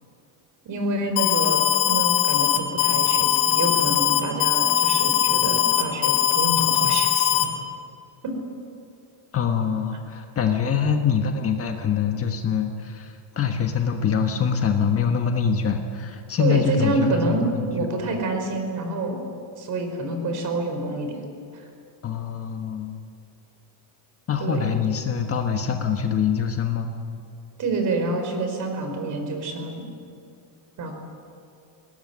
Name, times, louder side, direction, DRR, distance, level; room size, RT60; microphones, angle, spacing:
voice 1, 0.6-7.5 8.2-8.3 16.4-17.5 17.7-19.2 19.6-21.2 21.5-21.6 24.4-24.7 27.6-29.8 30.8-30.9, right 2 dB, 40° right, 5 dB, 4.9 m, -27 dB
Alarm, 1.2-7.4, left 12 dB, 90° left, 2.7 m, -20 dB
voice 2, 9.3-17.7 22.0-23.0 24.3-26.9, left 7 dB, 30° left, 4 dB, 1.4 m, -24 dB
20.5 x 19.0 x 9.8 m, 2.4 s
cardioid pair, 155°, 48 cm